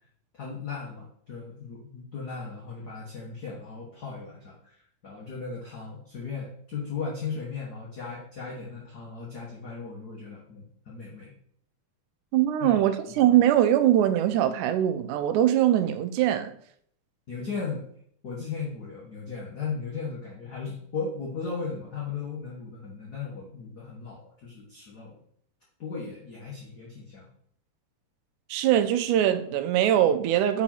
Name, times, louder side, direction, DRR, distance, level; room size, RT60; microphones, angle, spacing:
voice 1, 0.3-4.6 5.0-11.3 12.6-12.8 13.2-13.3 17.3-17.8 18.2-25.2 25.8-27.3, left 5 dB, 80° left, 0.8 m, -36 dB
voice 2, 12.3-16.5 28.5-30.6, right 11 dB, 85° right, 2.0 m, -22 dB
5.0 x 4.8 x 4.2 m
omnidirectional pair, 3.5 m